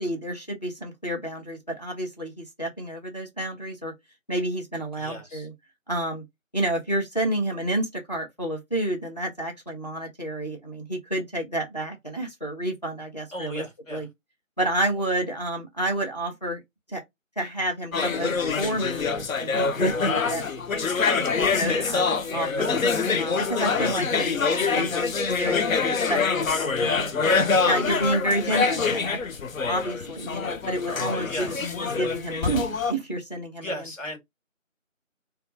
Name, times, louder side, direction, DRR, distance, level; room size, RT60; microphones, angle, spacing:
voice 1, 0.0-3.9 4.3-5.5 5.9-6.2 6.5-13.6 13.9-14.1 14.6-16.6 16.9-17.0 17.4-20.4 20.7-20.9 21.4-22.7 23.2-27.1 27.6-29.2 29.6-33.7, right 1 dB, 30° left, 0.8 m, -30 dB
voice 2, 5.0-5.5 13.3-14.1 21.5-21.9 31.3-31.8 33.6-34.2, left 1 dB, 70° left, 1.6 m, -36 dB
sound 1, 17.9-32.9, left 4 dB, 85° left, 0.6 m, -25 dB
2.8 x 2.2 x 2.5 m
figure-of-eight pair, 170°, 40 cm